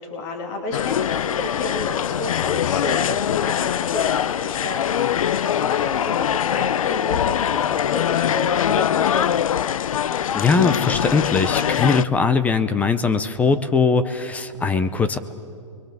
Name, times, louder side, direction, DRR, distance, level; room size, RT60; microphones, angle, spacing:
voice 1, 0.0-9.4, left 2 dB, 35° left, 2 dB, 2.8 m, -31 dB
sound 1, 0.7-12.1, left 9 dB, 90° left, 0.5 m, -22 dB
voice 2, 10.3-15.2, left 4 dB, 10° left, 12 dB, 0.5 m, -20 dB
29.0 x 22.5 x 7.4 m, 2.6 s
hypercardioid pair, 155°, 17 cm